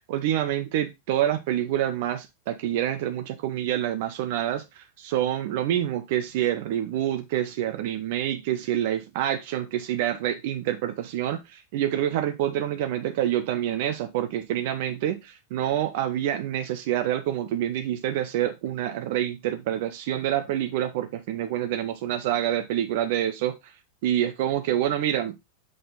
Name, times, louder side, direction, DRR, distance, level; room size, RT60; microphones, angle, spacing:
voice 1, 0.1-23.6 24.0-25.4, right 11 dB, 50° right, 0.7 m, -27 dB
5.9 x 5.1 x 3.8 m
figure-of-eight pair, 90°, 0 cm